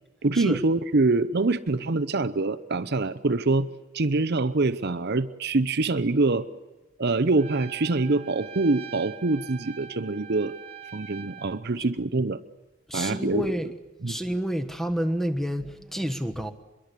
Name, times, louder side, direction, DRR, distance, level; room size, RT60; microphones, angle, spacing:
voice 1, 0.2-3.7 3.9-6.4 7.0-10.5 10.9-12.4 12.9-13.5 14.0-14.2, right 3 dB, 50° right, 12 dB, 0.7 m, -24 dB
Trumpet, 7.4-11.6, right 9 dB, 30° right, 1.4 m, -43 dB
voice 2, 12.9-13.7 14.1-16.5, equal, ahead, 9 dB, 1.2 m, -29 dB
25.0 x 22.5 x 8.3 m, 1.2 s
head